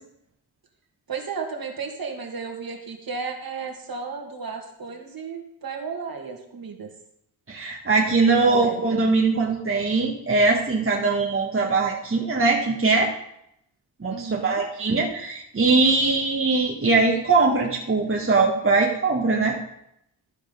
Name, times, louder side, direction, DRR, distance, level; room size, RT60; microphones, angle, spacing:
voice 1, 1.1-6.9 8.3-8.8 14.1-14.6, right 5 dB, 45° right, 2 dB, 2.2 m, -34 dB
voice 2, 7.5-13.1 14.0-19.6, right 3 dB, 25° right, -1 dB, 1.5 m, -21 dB
13.0 x 4.8 x 5.4 m, 0.77 s
supercardioid pair, 50°, 47 cm